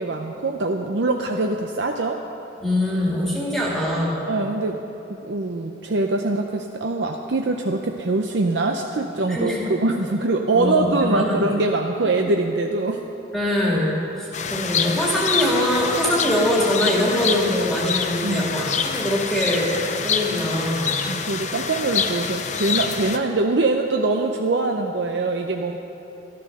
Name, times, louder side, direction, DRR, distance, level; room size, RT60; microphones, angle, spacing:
voice 1, 0.0-2.2 4.3-4.8 5.2-13.0 18.2-18.5 21.1-25.8, right 2 dB, 65° right, 3 dB, 0.6 m, -23 dB
voice 2, 2.6-4.2 9.3-9.7 10.5-11.4 13.3-19.7 20.0-21.0, left 1 dB, ahead, -5 dB, 2.1 m, -23 dB
sound 1, 14.3-23.2, left 6 dB, 40° left, 0.7 m, -26 dB
12.5 x 12.5 x 6.5 m, 3.0 s
head